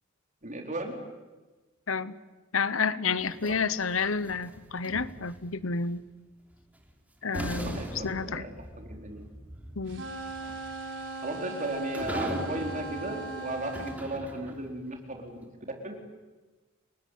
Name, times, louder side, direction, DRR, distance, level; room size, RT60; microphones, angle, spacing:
voice 1, 0.4-0.9 3.4-3.6 7.4-8.5 8.8-9.3 11.2-15.4 15.8-16.0, right 2 dB, 40° right, 3 dB, 4.4 m, -35 dB
voice 2, 2.5-6.0 7.2-8.5 9.8-10.0, left 5 dB, 70° left, 16 dB, 1.0 m, -30 dB
sound 1, 3.2-5.6 6.8-6.9 7.3-14.8, equal, 5° right, 3.4 m, -40 dB
sound 2, 9.9-14.0, right 3 dB, 60° right, 4.3 m, -39 dB
29.5 x 19.5 x 9.4 m, 1.2 s
head